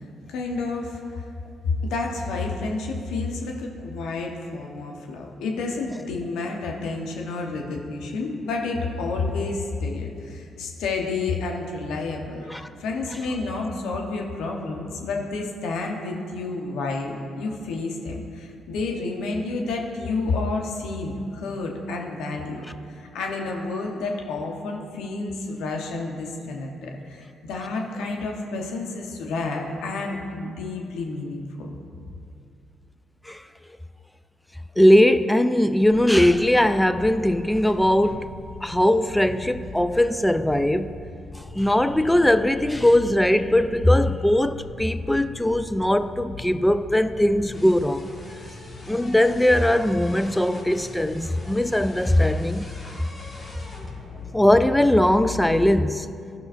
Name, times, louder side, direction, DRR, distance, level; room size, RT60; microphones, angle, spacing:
voice 1, 0.2-1.0 1.6-22.7 23.0-31.8, left 3 dB, 80° left, 1 dB, 1.0 m, -30 dB
voice 2, 34.8-38.3 38.6-40.9 41.3-48.1 48.9-52.7 54.3-56.1, left 1 dB, 10° left, 11 dB, 0.4 m, -20 dB
sound 1, 35.9-55.7, left 3 dB, 35° left, 2.0 m, -40 dB
14.5 x 5.6 x 2.6 m, 2.4 s
hypercardioid pair, 50°, 0 cm